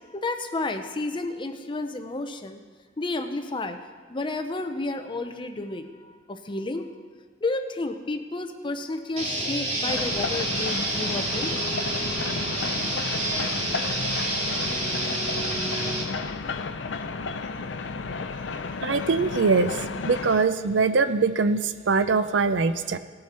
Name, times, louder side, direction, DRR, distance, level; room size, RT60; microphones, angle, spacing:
voice 1, 0.1-2.6 3.0-3.8 4.1-6.9 7.4-11.5, left 2 dB, 25° left, 7 dB, 0.6 m, -31 dB
sound 1, 9.2-16.0, right 1 dB, 40° right, 2.4 m, -28 dB
sound 2, 9.9-20.4, left 4 dB, 75° left, 0.5 m, -33 dB
voice 2, 18.8-19.8 20.0-23.0, right 4 dB, 75° right, 11 dB, 0.5 m, -22 dB
18.0 x 6.3 x 4.4 m, 1.5 s
head